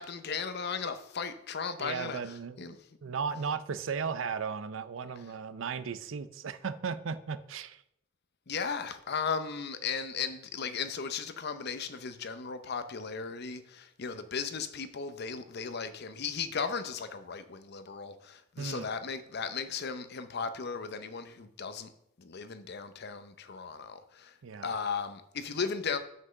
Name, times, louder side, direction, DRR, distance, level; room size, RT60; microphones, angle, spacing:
voice 1, 0.0-2.8 3.1-3.2 8.5-21.9 22.2-24.4 24.6-26.0, left 5 dB, 55° left, 10 dB, 0.7 m, -36 dB
voice 2, 1.8-2.7 3.0-7.8 18.6-18.9 24.4-24.7, right 6 dB, 75° right, 14 dB, 0.5 m, -36 dB
5.9 x 5.4 x 6.4 m, 0.77 s
head